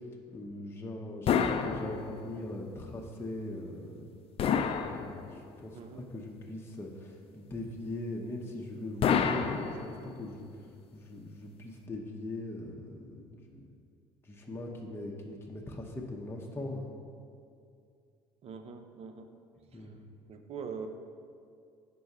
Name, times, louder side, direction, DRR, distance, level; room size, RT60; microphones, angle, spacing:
voice 1, 0.3-4.1 4.8-13.7 14.2-16.9 19.7-20.0, left 1 dB, 15° left, -1 dB, 0.8 m, -41 dB
sound 1, 1.3-2.5 4.4-5.6 9.0-10.3, left 7 dB, 45° left, 0.4 m, -29 dB
voice 2, 18.4-19.3 19.7-19.8 20.3-20.9, right 6 dB, 50° right, 7 dB, 0.6 m, -42 dB
5.3 x 4.6 x 5.4 m, 2.4 s
hypercardioid pair, 65°, 14 cm